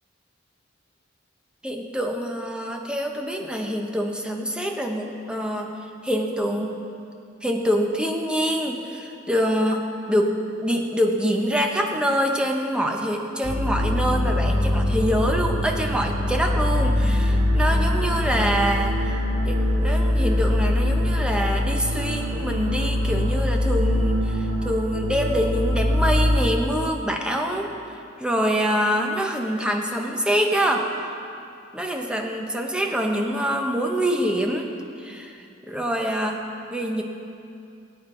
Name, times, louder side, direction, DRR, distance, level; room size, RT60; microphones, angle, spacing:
voice 1, 1.6-5.7 6.0-6.8 7.4-27.7 28.2-30.9 31.7-34.7 35.0-37.0, equal, 5° right, 1 dB, 0.9 m, -25 dB
sound 1, 13.4-26.4, left 1 dB, 85° right, 1.7 m, -23 dB
18.0 x 8.8 x 3.8 m, 2.6 s
head